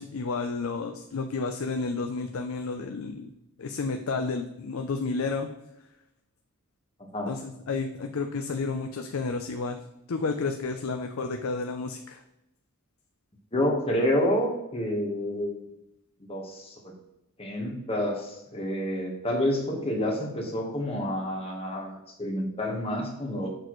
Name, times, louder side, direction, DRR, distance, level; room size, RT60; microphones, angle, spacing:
voice 1, 0.0-3.3 3.6-5.5 7.3-9.8 10.1-12.2, left 4 dB, 75° left, 6 dB, 0.5 m, -31 dB
voice 2, 13.5-15.6 16.3-16.7 17.4-23.5, equal, 25° left, 0 dB, 1.3 m, -28 dB
6.6 x 6.2 x 3.1 m, 0.86 s
head